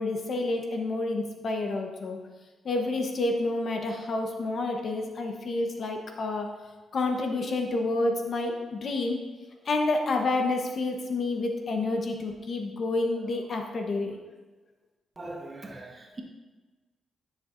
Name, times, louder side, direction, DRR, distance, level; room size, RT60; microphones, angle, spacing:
voice 1, 0.0-2.2 2.6-6.5 6.9-9.2 9.6-14.2, left 2 dB, 55° left, 3 dB, 1.1 m, -29 dB
voice 2, 15.2-16.2, right 2 dB, 30° right, 1 dB, 1.3 m, -40 dB
10.5 x 6.6 x 2.6 m, 1.3 s
cardioid pair, 70°, 0 cm